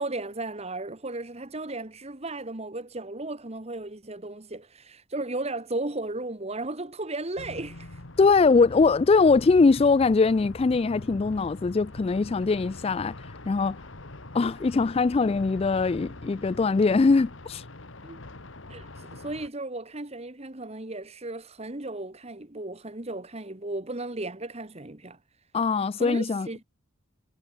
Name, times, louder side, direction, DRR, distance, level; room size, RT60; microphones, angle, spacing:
voice 1, 0.0-8.0 18.0-18.2 18.7-25.2 26.0-26.6, right 2 dB, 30° right, 1.6 m, -35 dB
sound 1, 7.4-19.5, left 2 dB, 65° left, 2.1 m, -43 dB
voice 2, 8.2-13.2 13.5-13.8 14.3-17.6 25.5-26.5, left 4 dB, 30° left, 0.3 m, -22 dB
head